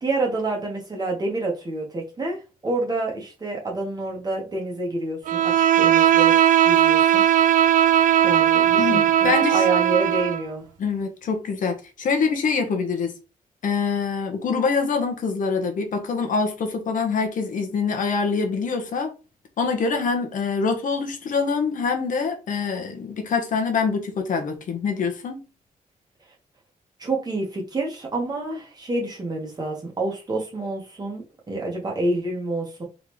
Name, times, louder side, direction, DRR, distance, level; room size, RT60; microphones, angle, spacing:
voice 1, 0.0-6.3 6.7-7.2 8.2-10.7 27.0-32.8, right 2 dB, 25° right, 1.6 m, -28 dB
Bowed string instrument, 5.3-10.4, right 10 dB, 65° right, 0.4 m, -18 dB
voice 2, 8.8-9.6 10.8-13.1 13.6-19.1 19.6-25.4, left 5 dB, 60° left, 1.0 m, -25 dB
3.8 x 3.7 x 3.1 m
wide cardioid pair, 145°, 15 cm